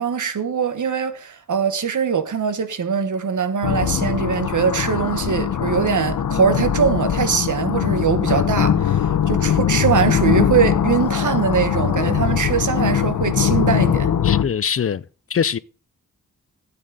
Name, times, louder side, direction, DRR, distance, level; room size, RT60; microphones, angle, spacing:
voice 1, 0.0-14.1, right 6 dB, 70° right, 1.3 m, -22 dB
sound 1, 3.6-14.4, left 9 dB, 90° left, 0.8 m, -21 dB
voice 2, 14.2-15.0 15.3-15.6, left 7 dB, 45° left, 0.5 m, -23 dB
13.0 x 8.5 x 4.1 m
wide cardioid pair, 105°, 31 cm